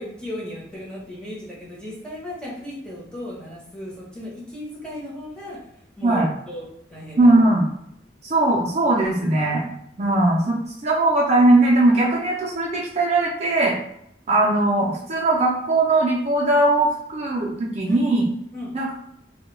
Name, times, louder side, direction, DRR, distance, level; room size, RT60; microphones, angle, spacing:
voice 1, 0.0-5.6 6.0-6.6 6.9-7.3 17.9-18.0 18.5-18.7, left 1 dB, 5° left, -6 dB, 0.8 m, -36 dB
voice 2, 7.2-7.7 8.2-9.7 10.0-13.8 14.3-18.3 18.7-18.9, right 2 dB, 40° right, -3 dB, 0.4 m, -19 dB
2.2 x 2.1 x 3.0 m, 0.75 s
head